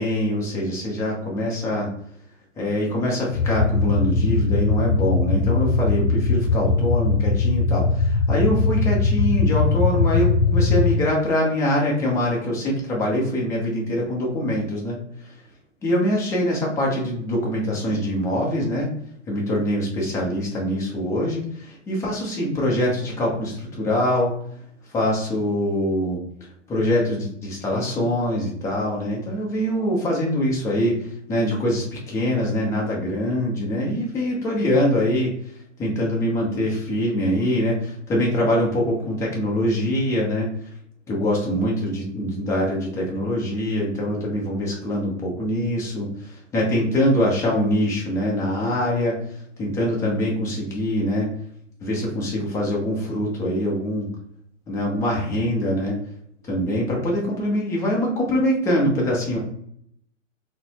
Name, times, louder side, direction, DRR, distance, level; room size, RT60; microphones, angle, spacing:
voice 1, 0.0-1.9 2.6-15.0 15.8-18.9 19.3-24.3 24.9-26.2 26.7-35.3 35.8-40.5 41.1-49.2 49.6-51.3 51.8-54.1 54.7-56.0 56.5-59.4, left 1 dB, 10° left, -3 dB, 0.5 m, -24 dB
sound 1, 3.3-10.9, left 3 dB, 65° left, 0.5 m, -20 dB
3.7 x 2.0 x 2.8 m, 0.69 s
hypercardioid pair, 120°, 38 cm